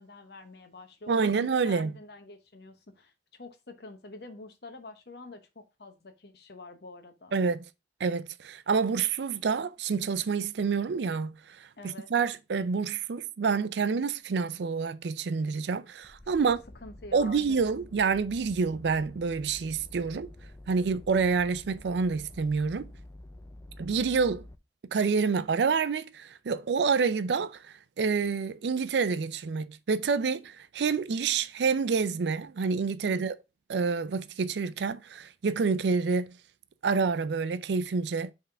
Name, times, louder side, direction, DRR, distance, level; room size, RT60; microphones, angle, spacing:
voice 1, 0.0-7.3 11.8-12.1 16.4-16.5 16.8-17.6 33.0-33.3, left 3 dB, 65° left, 1.0 m, -47 dB
voice 2, 1.1-1.9 7.3-7.7 8.0-16.6 17.1-20.3 20.7-22.9 23.8-24.4 24.9-33.4 33.7-36.4 36.8-38.3, right 5 dB, 75° right, 0.4 m, -28 dB
sound 1, 16.0-24.6, left 1 dB, 15° left, 0.4 m, -49 dB
5.6 x 3.6 x 4.8 m
head